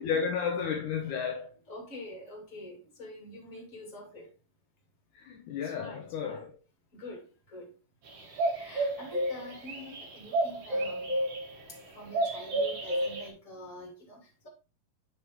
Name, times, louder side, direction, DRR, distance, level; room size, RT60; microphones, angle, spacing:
voice 1, 0.0-1.5 5.2-6.5, left 6 dB, 70° left, 2.3 m, -32 dB
voice 2, 1.7-4.3 5.6-6.4 6.9-7.8 8.5-11.2 11.7-14.5, left 1 dB, 25° left, 2.9 m, -46 dB
sound 1, 8.1-11.8 12.1-13.3, right 1 dB, 50° right, 2.5 m, -31 dB
7.8 x 5.2 x 3.6 m
omnidirectional pair, 3.9 m